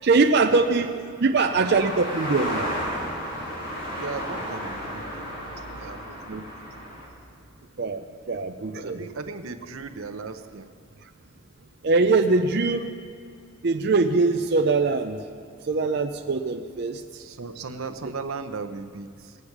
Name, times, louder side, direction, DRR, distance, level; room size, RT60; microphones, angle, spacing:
voice 1, 0.0-2.7 6.3-6.4 7.8-9.0 11.8-12.9 13.6-15.2 15.6-17.2, right 3 dB, 50° right, 4 dB, 0.5 m, -22 dB
sound 1, 1.4-7.1, equal, 40° left, 3.0 m, -33 dB
voice 2, 3.9-6.4 8.3-10.7 17.2-19.4, right 4 dB, 80° right, 9 dB, 0.8 m, -37 dB
19.0 x 8.1 x 5.9 m, 2.3 s
head